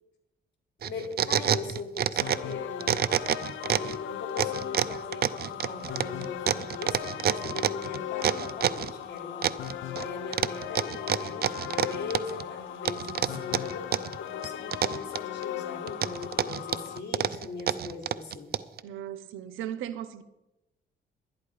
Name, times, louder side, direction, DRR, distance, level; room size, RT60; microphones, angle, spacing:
voice 1, 0.8-3.1 3.6-9.6 9.9-18.5, left 4 dB, 60° left, 3.4 m, -40 dB
sound 1, 0.8-2.5 2.8-4.0 4.4-8.9 9.4-10.1 10.3-12.4 12.9-14.2 14.4-15.4 15.9-18.8, right 10 dB, 50° right, 0.6 m, -27 dB
sound 2, 2.2-17.0, left 11 dB, 75° left, 0.8 m, -38 dB
voice 2, 18.8-20.2, right 10 dB, 90° right, 0.8 m, -37 dB
12.0 x 10.5 x 5.0 m
cardioid pair, 90°, 20 cm